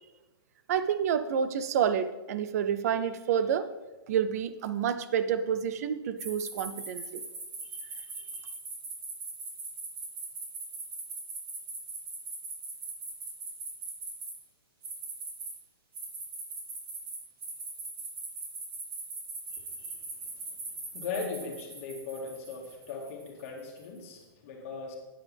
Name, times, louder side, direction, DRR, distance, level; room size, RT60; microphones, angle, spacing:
voice 1, 0.7-3.7 4.1-7.2, right 8 dB, 40° right, 12 dB, 0.6 m, -29 dB
sound 1, 6.2-14.3 14.8-15.5 15.9-23.8, right 3 dB, 60° right, 4.1 m, -40 dB
voice 2, 20.9-25.0, left 4 dB, 35° left, 0 dB, 2.0 m, -38 dB
12.0 x 9.3 x 3.5 m, 1.1 s
hypercardioid pair, 170°, 13 cm